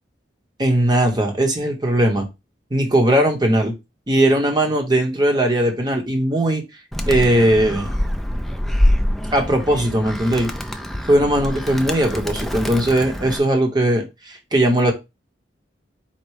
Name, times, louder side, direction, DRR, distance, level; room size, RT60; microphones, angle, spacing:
voice 1, 0.6-2.3 2.7-3.7 4.1-6.6 7.1-7.9 9.3-10.5 11.1-14.9, right 1 dB, 25° right, 0.9 m, -18 dB
Animal, 6.9-13.4, left 1 dB, ahead, 0.3 m, -24 dB
4.3 x 2.2 x 4.7 m
head